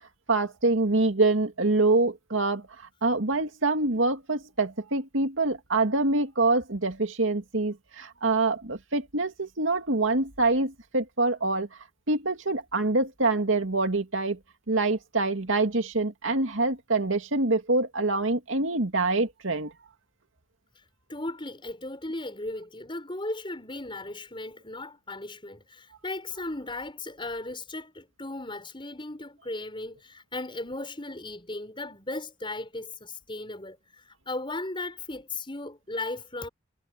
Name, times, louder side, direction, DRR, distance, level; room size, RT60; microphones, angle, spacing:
voice 1, 0.3-11.7 12.1-14.4 14.7-19.7, right 2 dB, 85° right, 2.3 m, -25 dB
voice 2, 21.1-36.5, left 2 dB, 25° left, 6.1 m, -36 dB
head